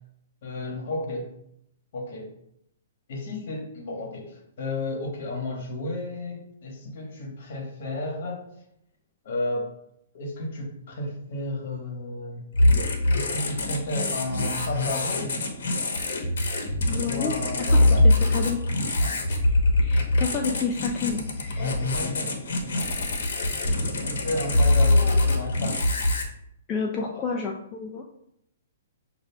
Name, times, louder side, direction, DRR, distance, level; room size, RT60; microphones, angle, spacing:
voice 1, 0.4-1.3 1.9-2.3 3.1-8.5 9.2-9.7 10.1-12.5 13.1-15.3 17.0-18.0 19.0-19.2 21.6-23.1 23.5-25.8 27.1-27.4, left 2 dB, 55° left, 0 dB, 1.1 m, -33 dB
sound 1, 12.5-26.2, left 2 dB, 70° left, 0.8 m, -23 dB
voice 2, 16.9-17.4 17.7-17.8 18.3-18.6 19.3-19.4 19.8-21.7 26.7-28.0, left 5 dB, 20° left, 0 dB, 0.3 m, -30 dB
6.5 x 2.4 x 2.2 m, 0.76 s
hypercardioid pair, 155°, 0 cm